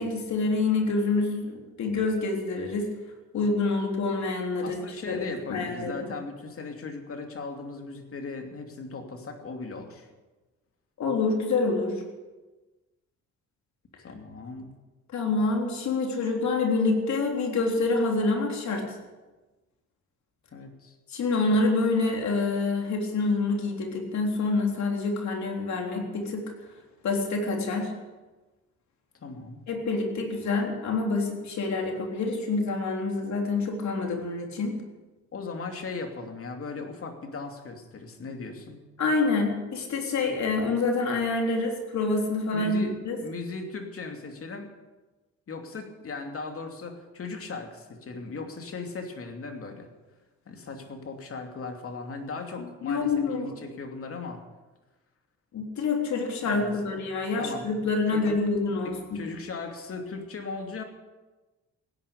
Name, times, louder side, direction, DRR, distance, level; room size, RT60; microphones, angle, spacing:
voice 1, 0.0-2.9 3.3-4.8 5.1-5.2 5.5-6.1 11.0-12.0 15.1-19.0 21.1-26.5 27.0-27.9 29.7-34.8 39.0-43.2 52.8-53.5 55.5-59.2, left 3 dB, 65° left, 2 dB, 3.7 m, -27 dB
voice 2, 4.6-10.1 14.0-14.7 20.5-21.0 29.1-29.6 35.3-38.8 42.5-44.7 45.5-49.9 50.5-54.5 56.4-57.0 57.4-57.7 58.1-58.4 58.8-60.8, left 3 dB, 50° left, 4 dB, 2.8 m, -38 dB
16.5 x 10.5 x 8.2 m, 1.2 s
cardioid pair, 90°, 30 cm